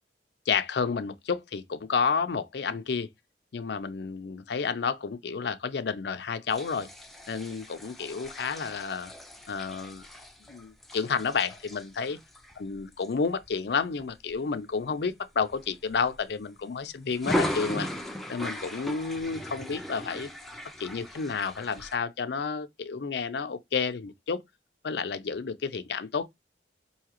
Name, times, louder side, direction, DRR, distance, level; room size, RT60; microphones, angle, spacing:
voice 1, 0.5-3.1 3.5-6.9 7.3-9.1 9.5-10.1 10.5-12.2 12.6-17.9 18.3-20.3 20.8-24.4 24.8-26.2, left 5 dB, 65° left, 0.5 m, -30 dB
sound 1, 6.5-14.3 14.8-15.1 15.4-16.6 17.1-21.9, equal, ahead, 0.5 m, -37 dB
4.8 x 2.7 x 2.8 m
head